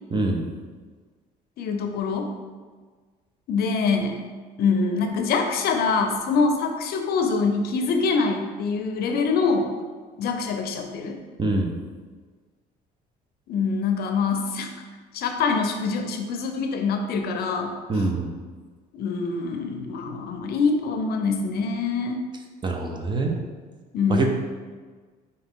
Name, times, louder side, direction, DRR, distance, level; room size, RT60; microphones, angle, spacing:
voice 1, 0.1-0.5 11.4-11.8 17.9-18.3 22.6-23.3 24.1-24.3, right 2 dB, 25° right, 2 dB, 0.6 m, -24 dB
voice 2, 1.6-2.3 3.5-4.2 4.6-9.7 10.2-11.2 13.5-14.7 15.1-17.7 18.9-22.2 23.9-24.3, left 4 dB, 70° left, 4 dB, 0.5 m, -24 dB
4.8 x 2.7 x 3.6 m, 1.5 s
cardioid pair, 110°, 17 cm